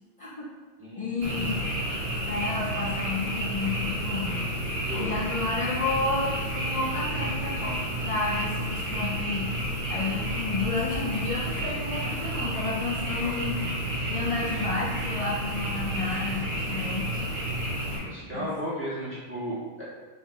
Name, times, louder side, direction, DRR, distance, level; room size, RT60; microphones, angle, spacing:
voice 1, 1.0-1.7 2.3-4.3 5.0-9.6 9.9-13.6 14.1-17.2 18.3-18.5, left 3 dB, 60° left, -5 dB, 0.3 m, -31 dB
Frog, 1.2-18.0, right 1 dB, 55° right, 1.3 m, -31 dB
voice 2, 18.0-19.8, equal, 10° right, -11 dB, 1.4 m, -34 dB
5.1 x 2.6 x 3.1 m, 1.4 s
omnidirectional pair, 1.2 m